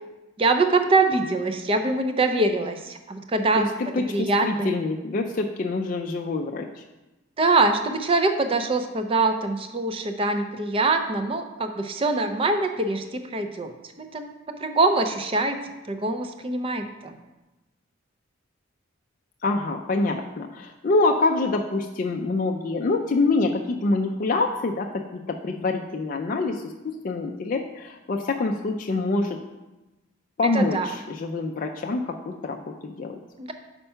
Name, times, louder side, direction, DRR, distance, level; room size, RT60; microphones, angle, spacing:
voice 1, 0.4-3.7 4.1-4.7 7.4-15.6 15.9-17.2 30.5-30.9 33.4-33.5, right 3 dB, 25° right, 7 dB, 0.4 m, -24 dB
voice 2, 3.9-6.8 19.4-29.4 30.4-33.2, left 3 dB, 40° left, 2 dB, 0.3 m, -26 dB
5.5 x 4.4 x 5.5 m, 1.1 s
head